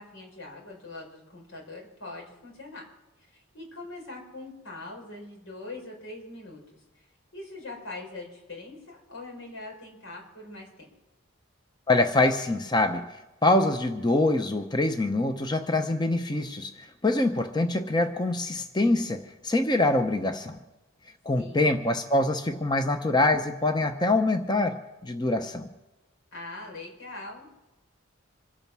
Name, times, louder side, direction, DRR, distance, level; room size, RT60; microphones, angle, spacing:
voice 1, 0.0-2.9 3.3-6.8 7.3-10.9 21.4-21.8 26.3-27.6, left 2 dB, 90° left, -1 dB, 5.5 m, -42 dB
voice 2, 11.9-13.1 13.4-20.6 21.2-25.7, left 2 dB, 20° left, 7 dB, 0.7 m, -25 dB
26.5 x 8.8 x 6.1 m, 1.1 s
head